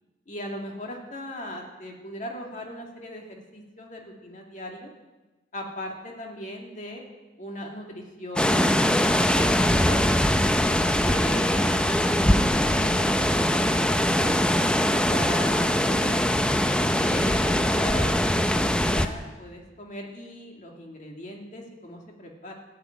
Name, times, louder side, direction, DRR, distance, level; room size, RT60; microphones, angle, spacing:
voice 1, 0.3-4.9 5.5-7.0 7.4-8.8 9.3-10.1 10.8-14.4 15.1-16.5 17.0-22.5, left 1 dB, 45° left, 1 dB, 2.4 m, -39 dB
sound 1, 8.4-19.1, left 1 dB, 5° left, 0.5 m, -22 dB
sound 2, 12.2-19.0, equal, 20° right, 1.9 m, -43 dB
13.5 x 8.3 x 9.1 m, 1.2 s
head